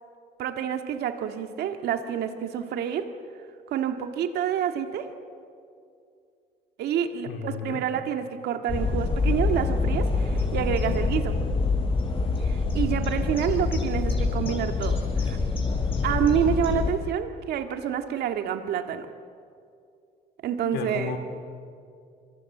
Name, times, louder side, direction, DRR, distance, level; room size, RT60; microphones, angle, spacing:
voice 1, 0.4-3.1 3.7-5.1 6.8-11.4 12.4-15.4 16.0-19.1 20.4-21.1, right 9 dB, 75° right, 6 dB, 1.9 m, -28 dB
voice 2, 7.2-7.8 20.7-21.2, left 7 dB, 85° left, 6 dB, 3.8 m, -33 dB
sound 1, 8.7-16.9, left 3 dB, 30° left, 5.0 m, -26 dB
26.0 x 25.0 x 7.9 m, 2.4 s
cardioid pair, 110°, 17 cm